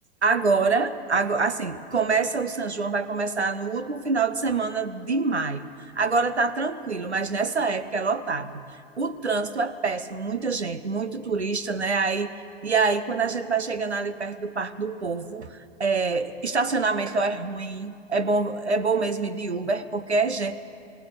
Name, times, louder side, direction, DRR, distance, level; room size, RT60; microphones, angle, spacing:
voice 1, 0.2-5.6 6.0-8.6 9.0-20.6, right 4 dB, 85° right, 12 dB, 1.0 m, -26 dB
19.0 x 18.5 x 7.9 m, 2.3 s
figure-of-eight pair, 90°, 32 cm